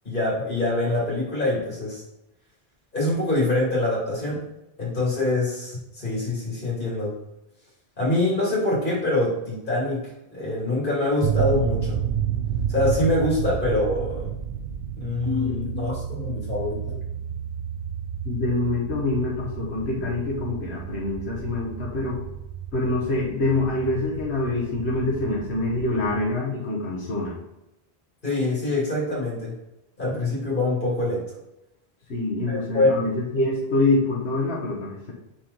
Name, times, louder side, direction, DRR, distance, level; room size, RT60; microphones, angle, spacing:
voice 1, 0.0-2.0 2.9-4.4 4.8-7.1 8.0-10.0 10.3-12.0 12.7-14.3 15.0-16.8 28.2-29.5 30.0-31.2 32.5-33.0, left 2 dB, 55° left, -5 dB, 2.7 m, -24 dB
sound 1, 11.2-26.2, right 9 dB, 65° right, 0.8 m, -31 dB
voice 2, 18.2-22.2 22.7-27.3 32.1-35.1, left 2 dB, 85° left, -5 dB, 1.4 m, -25 dB
6.2 x 4.5 x 3.9 m, 0.91 s
omnidirectional pair, 1.1 m